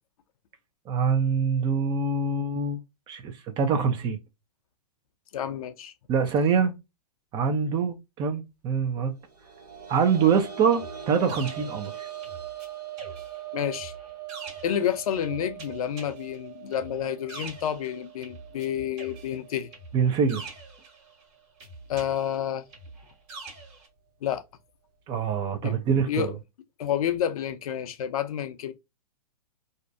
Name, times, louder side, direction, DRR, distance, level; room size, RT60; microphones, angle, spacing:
voice 1, 0.9-2.8 3.1-4.2 6.1-6.8 7.3-9.1 9.9-12.1 19.9-20.5 25.1-26.3, right 6 dB, 20° right, 0.4 m, -25 dB
voice 2, 5.3-5.9 13.5-13.9 14.6-19.7 21.9-22.7 24.2-24.4 25.6-25.7 26.1-26.3 26.8-28.7, left 9 dB, 60° left, 0.5 m, -29 dB
sound 1, 9.3-20.7 21.1-21.2 22.7-22.8, right 10 dB, 80° right, 1.2 m, -42 dB
sound 2, 10.7-12.7 13.0-18.7 19.0-21.2 21.6-23.9, right 3 dB, 40° right, 1.3 m, -45 dB
2.5 x 2.1 x 2.4 m
hypercardioid pair, 125°, 20 cm